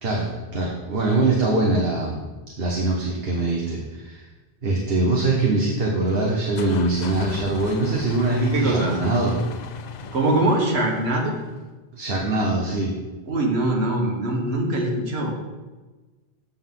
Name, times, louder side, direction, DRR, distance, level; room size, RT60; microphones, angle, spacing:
voice 1, 0.0-2.2 2.6-4.2 4.6-9.4 11.9-12.9, right 2 dB, 65° right, -2 dB, 1.3 m, -23 dB
sound 1, 6.1-11.6, left 5 dB, 55° left, 0.5 m, -37 dB
voice 2, 8.5-9.0 10.1-11.4 13.3-15.3, right 2 dB, 85° right, 1 dB, 1.6 m, -22 dB
7.8 x 7.1 x 3.8 m, 1.2 s
omnidirectional pair, 1.1 m